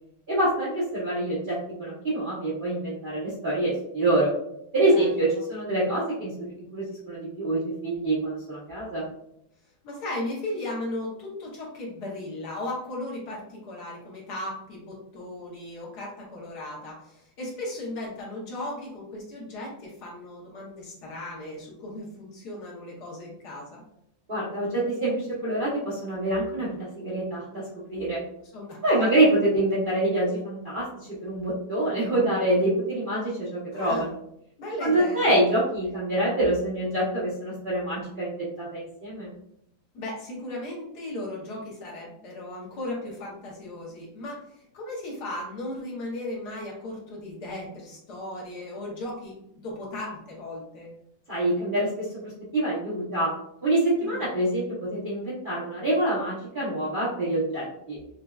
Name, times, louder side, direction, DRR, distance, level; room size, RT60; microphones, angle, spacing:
voice 1, 0.3-4.3 4.7-9.0 24.3-27.6 27.9-28.2 28.8-34.1 34.8-39.3 51.3-53.3 53.6-58.0, right 1 dB, 45° right, -9 dB, 0.7 m, -26 dB
voice 2, 9.8-23.8 28.5-29.1 33.7-34.1 34.6-35.3 39.9-49.3 49.6-50.9 54.0-54.4, left 1 dB, 60° left, -3 dB, 1.3 m, -36 dB
5.1 x 2.2 x 2.3 m, 0.77 s
omnidirectional pair, 2.1 m